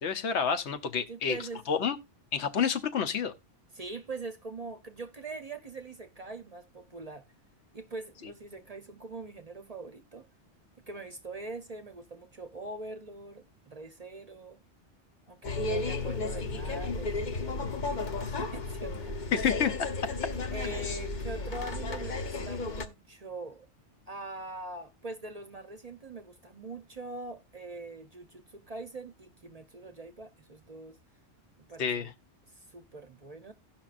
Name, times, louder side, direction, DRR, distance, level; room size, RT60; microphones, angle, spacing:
voice 1, 0.0-1.4 1.7-2.0 2.3-3.3 19.3-19.9 31.8-32.1, left 7 dB, 75° left, 1.1 m, -29 dB
voice 2, 1.1-1.7 3.7-7.2 7.7-10.3 10.9-14.6 15.3-19.3 20.5-23.7 24.1-31.0 31.6-32.1 32.5-33.5, right 3 dB, 40° right, 0.6 m, -43 dB
sound 1, 15.4-22.9, left 3 dB, 45° left, 0.9 m, -33 dB
17.0 x 5.9 x 2.4 m
omnidirectional pair, 1.2 m